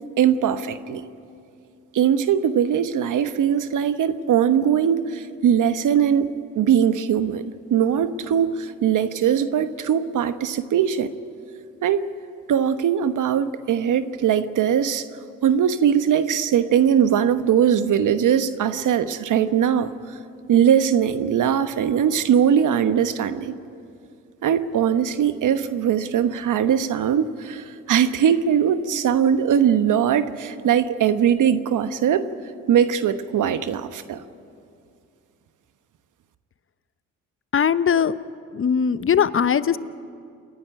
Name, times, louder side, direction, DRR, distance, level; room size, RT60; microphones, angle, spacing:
voice 1, 0.2-1.0 1.9-7.4 7.7-11.1 11.8-12.1 12.5-15.0 15.4-19.9 20.5-23.5 24.4-32.2 32.7-34.2, right 8 dB, 65° right, 11 dB, 1.1 m, -20 dB
voice 2, 37.5-38.2 38.5-39.8, left 7 dB, 40° left, 15 dB, 0.8 m, -20 dB
29.0 x 11.0 x 9.9 m, 2.4 s
supercardioid pair, 50°, 33 cm